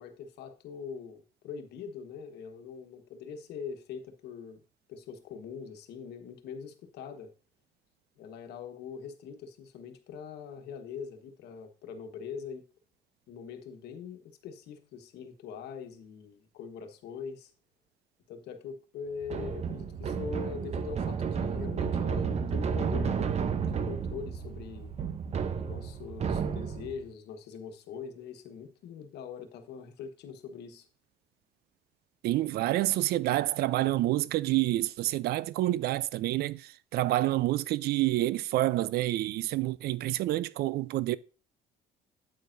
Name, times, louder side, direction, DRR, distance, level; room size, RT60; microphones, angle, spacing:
voice 1, 0.0-4.6 4.9-7.3 8.2-12.6 13.3-17.5 18.3-23.3 23.6-24.9 25.5-30.9, left 6 dB, 80° left, 1.3 m, -42 dB
sound 1, 19.2-27.0, right 6 dB, 40° right, 0.8 m, -32 dB
voice 2, 32.2-41.2, right 16 dB, 70° right, 0.4 m, -28 dB
8.8 x 8.5 x 2.6 m
cardioid pair, 110°, 17 cm